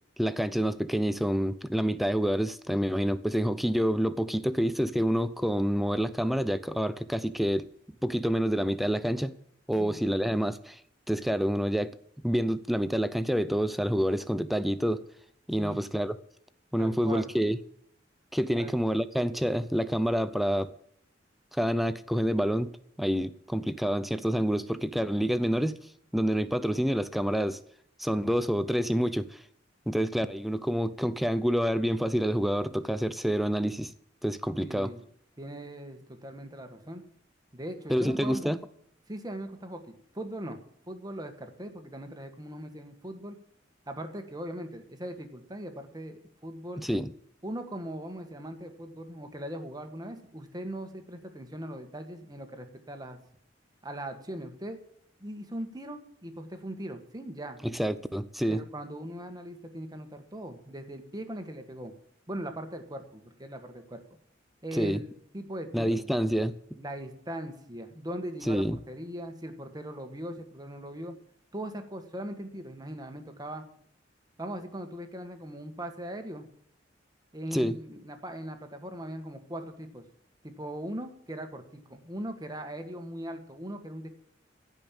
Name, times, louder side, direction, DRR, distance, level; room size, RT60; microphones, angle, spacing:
voice 1, 0.2-7.7 8.0-9.3 9.7-10.8 11.1-12.0 12.2-15.0 15.5-16.1 16.7-17.6 18.3-20.7 21.6-22.7 23.0-25.8 26.1-27.6 28.0-29.4 29.9-33.9 34.2-34.9 37.9-38.6 46.8-47.1 57.6-58.6 64.8-65.0 65.7-66.6 68.5-68.8 77.5-77.8, equal, ahead, 0.6 m, -27 dB
voice 2, 16.8-17.3 18.6-18.7 34.6-35.0 35.4-37.0 37.5-38.5 39.1-40.6 40.9-43.4 43.9-46.8 47.4-53.2 53.8-54.8 55.2-57.6 58.5-61.9 62.3-64.0 64.6-66.1 66.8-71.1 71.5-73.7 74.4-76.5 77.3-80.0 80.4-84.1, right 1 dB, 20° right, 1.6 m, -40 dB
16.0 x 5.4 x 8.9 m
head